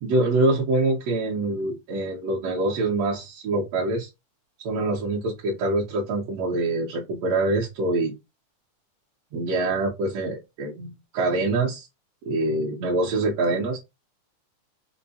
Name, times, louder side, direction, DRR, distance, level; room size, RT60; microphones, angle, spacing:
voice 1, 0.0-4.1 4.6-8.1 9.3-11.9 12.2-13.8, right 2 dB, 70° right, -4 dB, 1.6 m, -25 dB
5.3 x 2.1 x 2.7 m, 0.23 s
omnidirectional pair, 3.7 m